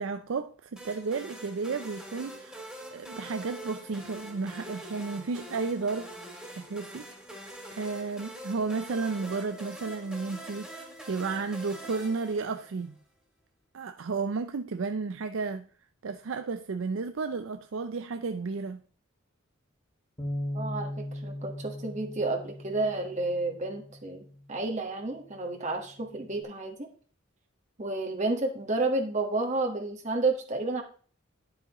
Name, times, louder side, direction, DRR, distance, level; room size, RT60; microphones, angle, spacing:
voice 1, 0.0-2.6 2.9-6.1 6.6-13.0 13.7-15.7 16.0-18.8, right 4 dB, 75° right, 0.5 m, -33 dB
sound 1, 0.8-12.9, right 1 dB, 5° right, 2.6 m, -44 dB
Bass guitar, 20.2-24.6 25.3-26.4, left 1 dB, 25° left, 2.0 m, -39 dB
voice 2, 20.5-26.9 27.8-30.8, right 2 dB, 35° right, 1.4 m, -31 dB
11.0 x 8.1 x 3.0 m
head